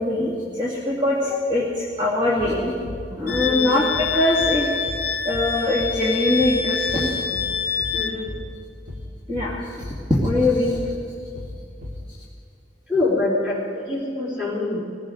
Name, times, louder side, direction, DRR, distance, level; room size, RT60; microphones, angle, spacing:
voice 1, 0.0-2.7 3.2-4.7 5.2-7.1 9.3-9.6 10.2-10.8, left 1 dB, 25° right, -6 dB, 2.2 m, -22 dB
sound 1, 2.4-2.6 2.8-3.0 3.3-3.5 3.9-4.1 4.4-4.6 4.9-5.1 5.3-5.5 5.8-6.0 6.4-6.6 6.9-7.1 7.3-7.5 7.8-8.0 8.3-8.5 8.9-9.1 9.3-9.5 9.8-10.0 10.3-10.5 10.7-10.9 11.3-11.5 11.8-12.0, left 1 dB, 50° right, 2.9 m, -35 dB
voice 2, 3.1-3.8 7.3-7.6 7.9-8.3 12.9-14.8, left 2 dB, 5° right, -5 dB, 4.3 m, -26 dB
Wind instrument woodwind instrument, 3.3-8.2, left 6 dB, 55° left, 1.0 m, -26 dB
20.0 x 16.0 x 3.9 m, 2.3 s
head